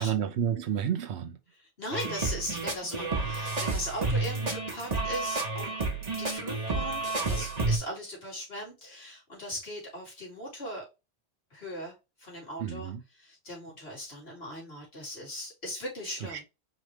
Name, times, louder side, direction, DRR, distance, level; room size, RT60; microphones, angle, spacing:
voice 1, 0.0-1.4 12.6-13.0 16.2-16.4, right 8 dB, 75° right, 1.0 m, -30 dB
voice 2, 1.8-5.7 6.2-10.9 11.5-11.9 12.2-12.9 13.2-16.4, equal, 65° left, 2.8 m, -39 dB
sound 1, 1.9-7.8, right 3 dB, 40° right, 1.1 m, -30 dB
5.0 x 3.2 x 3.0 m
omnidirectional pair, 1.1 m